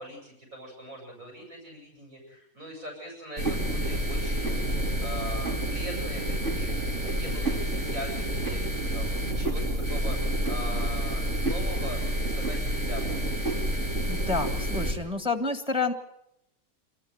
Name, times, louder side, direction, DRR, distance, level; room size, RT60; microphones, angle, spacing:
voice 1, 0.0-4.6 5.0-6.7 7.0-9.1 9.4-10.2 10.4-13.3, equal, 70° right, -1 dB, 7.9 m, -41 dB
sound 1, 3.4-14.9, right 1 dB, 55° right, 5.4 m, -28 dB
voice 2, 14.1-15.9, left 3 dB, 5° right, 9 dB, 1.7 m, -29 dB
28.5 x 13.5 x 9.3 m, 0.79 s
omnidirectional pair, 1.5 m